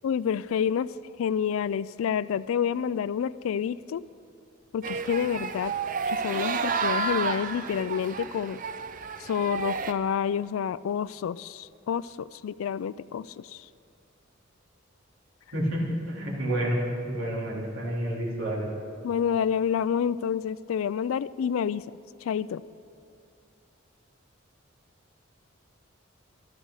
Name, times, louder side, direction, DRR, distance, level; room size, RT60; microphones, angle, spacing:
voice 1, 0.0-0.9 1.2-4.0 4.7-5.7 6.1-8.6 9.2-13.6 19.0-21.8 22.2-22.6, left 8 dB, 90° left, 17 dB, 0.3 m, -28 dB
sound 1, 4.8-9.9, right 5 dB, 40° right, 0.5 m, -31 dB
voice 2, 15.5-16.8 17.1-18.7, right 1 dB, 85° right, -5 dB, 3.3 m, -29 dB
12.5 x 11.5 x 6.4 m, 2.5 s
head